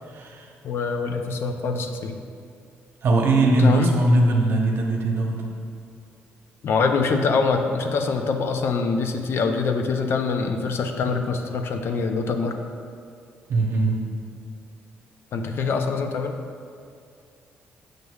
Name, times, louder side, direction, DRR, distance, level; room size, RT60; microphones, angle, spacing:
voice 1, 0.1-0.5 3.0-5.5 13.5-13.9, right 2 dB, 60° right, 1 dB, 0.8 m, -20 dB
voice 2, 0.6-2.2 3.6-3.9 6.6-12.6 15.3-16.4, left 4 dB, 60° left, 5 dB, 0.5 m, -24 dB
6.5 x 6.2 x 2.3 m, 2.3 s
supercardioid pair, 70°, 5 cm